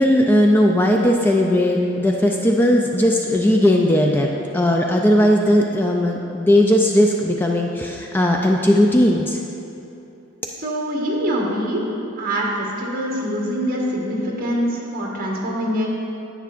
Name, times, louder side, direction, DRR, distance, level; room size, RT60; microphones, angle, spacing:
voice 1, 0.0-4.3 4.5-9.4, left 1 dB, 10° left, 1 dB, 0.3 m, -17 dB
voice 2, 10.6-11.9 12.2-15.9, equal, 45° right, -3 dB, 1.4 m, -24 dB
10.0 x 8.4 x 2.5 m, 2.8 s
head